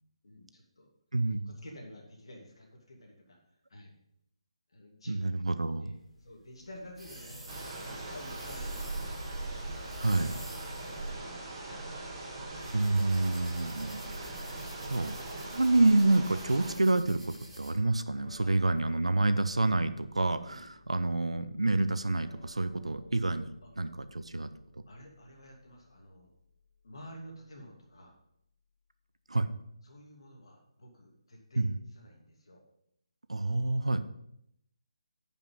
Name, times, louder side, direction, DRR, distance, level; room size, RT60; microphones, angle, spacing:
voice 1, 0.2-0.9 1.5-3.4 3.7-3.9 4.7-5.9 6.2-9.2 10.7-11.8 18.4-18.5 20.5-20.7 23.6-23.7 24.9-26.3 26.8-28.1 29.8-31.7 31.9-32.6, equal, 55° left, 0 dB, 2.7 m, -51 dB
voice 2, 1.1-1.5 5.1-5.9 10.0-10.4 12.7-14.6 14.9-23.5 23.8-24.5 29.3-29.5 31.6-31.8 33.3-34.0, right 2 dB, 70° right, 11 dB, 0.7 m, -28 dB
sound 1, 6.0-18.9, right 1 dB, 5° right, 2.7 m, -50 dB
sound 2, 7.5-16.7, right 2 dB, 20° right, 1.8 m, -40 dB
sound 3, 10.1-28.4, left 3 dB, 15° left, 1.5 m, -60 dB
9.4 x 5.5 x 5.6 m, 0.76 s
figure-of-eight pair, 150°, 3 cm